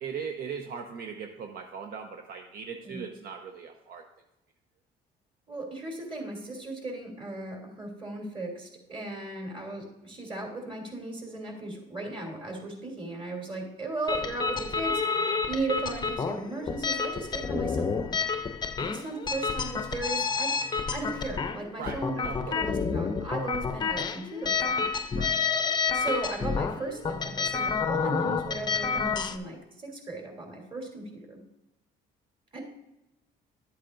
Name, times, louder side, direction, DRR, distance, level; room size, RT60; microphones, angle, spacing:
voice 1, 0.0-4.0 21.8-22.6 25.2-25.4, right 6 dB, 65° right, 4 dB, 0.8 m, -39 dB
voice 2, 5.5-18.2 18.8-20.5 20.9-24.9 25.9-31.4 32.5-32.6, right 2 dB, 30° right, 1 dB, 3.0 m, -36 dB
sound 1, 14.1-29.4, left 5 dB, 25° left, 0.6 m, -29 dB
11.5 x 8.3 x 2.6 m, 0.92 s
cardioid pair, 110°, 17 cm